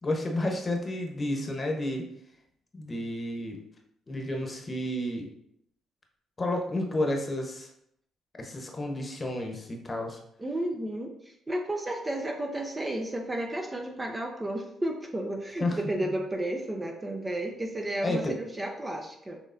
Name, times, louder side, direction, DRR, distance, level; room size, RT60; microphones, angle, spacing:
voice 1, 0.0-2.1 2.7-3.6 4.1-5.3 6.4-7.7 8.4-10.2 15.6-16.1 18.0-18.4, left 1 dB, 30° left, 2 dB, 1.0 m, -31 dB
voice 2, 10.4-19.4, right 1 dB, 20° right, 3 dB, 0.6 m, -32 dB
6.5 x 3.1 x 2.6 m, 0.75 s
cardioid pair, 90°, 0 cm